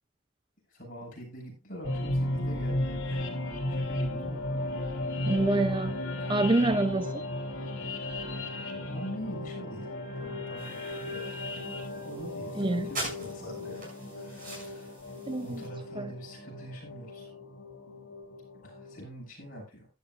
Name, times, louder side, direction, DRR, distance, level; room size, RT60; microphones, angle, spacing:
voice 1, 0.7-3.4 3.7-4.4 6.6-6.9 8.8-9.9 10.2-11.5 12.0-15.0 15.4-17.3 18.6-19.9, equal, 40° left, 6.8 m, -44 dB
sound 1, 1.8-19.0, left 1 dB, 75° left, 3.1 m, -35 dB
voice 2, 5.3-6.0 6.3-7.1 12.6-12.9 15.3-15.6 16.0-16.1, right 2 dB, 25° right, 0.4 m, -26 dB
sound 2, 10.6-15.7, right 2 dB, 40° right, 7.3 m, -43 dB
15.0 x 11.0 x 2.5 m
head